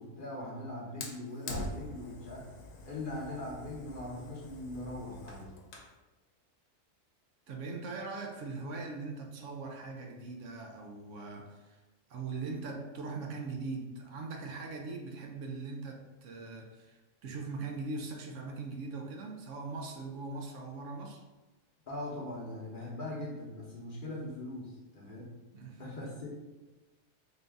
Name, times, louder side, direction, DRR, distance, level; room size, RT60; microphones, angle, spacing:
voice 1, 0.0-2.4 2.8-5.5 21.9-25.3 25.8-26.3, left 1 dB, 45° left, -4 dB, 0.9 m, -41 dB
Fire, 1.0-6.0, left 2 dB, 85° left, 1.1 m, -44 dB
voice 2, 7.5-11.8 12.1-21.2 25.5-25.8, right 3 dB, 70° right, 2 dB, 0.9 m, -41 dB
3.8 x 2.6 x 3.4 m, 1.1 s
omnidirectional pair, 1.4 m